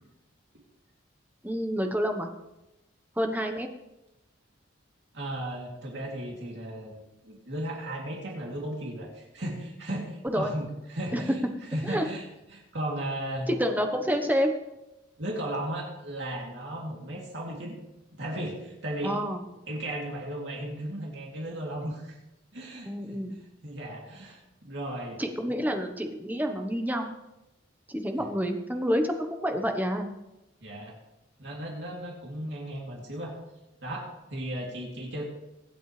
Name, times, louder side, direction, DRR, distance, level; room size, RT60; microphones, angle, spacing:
voice 1, 1.4-2.3 3.2-3.7 10.2-10.5 11.1-11.3 11.8-12.1 13.5-14.5 19.0-19.4 22.9-23.4 25.2-27.1 27.9-30.1, equal, 10° right, 5 dB, 1.1 m, -28 dB
voice 2, 5.1-11.4 11.7-12.2 12.5-13.5 15.2-17.8 18.1-19.1 19.7-22.2 22.5-22.9 23.6-25.2 30.6-30.9 31.4-33.3 33.8-35.2, right 1 dB, 60° right, -2 dB, 2.9 m, -35 dB
24.5 x 8.8 x 3.3 m, 0.95 s
head